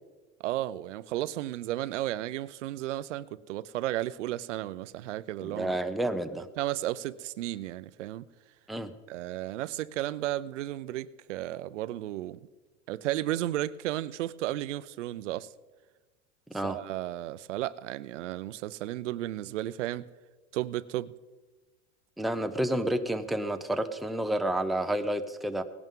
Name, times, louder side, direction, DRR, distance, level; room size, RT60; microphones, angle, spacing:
voice 1, 0.4-5.7 6.6-8.2 9.1-12.4 12.9-15.5 16.6-20.1 20.5-21.1, right 14 dB, 90° right, 0.6 m, -33 dB
voice 2, 5.4-6.5 8.7-8.9 16.5-16.8 22.2-25.6, right 1 dB, ahead, 0.6 m, -30 dB
18.0 x 11.0 x 3.7 m
supercardioid pair, 125°, 35 cm